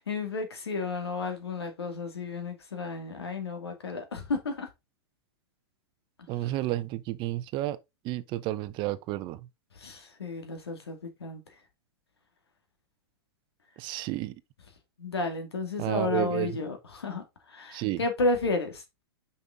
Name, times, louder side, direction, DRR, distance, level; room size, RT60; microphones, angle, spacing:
voice 1, 0.1-4.7 9.8-11.4 15.0-17.2 17.5-19.0, left 3 dB, 85° left, 2.2 m, -32 dB
voice 2, 6.3-7.8 8.0-9.4 13.8-14.4 15.8-16.6 17.7-18.0, right 15 dB, 35° right, 0.7 m, -31 dB
5.8 x 5.5 x 3.8 m
hypercardioid pair, 115°, 13 cm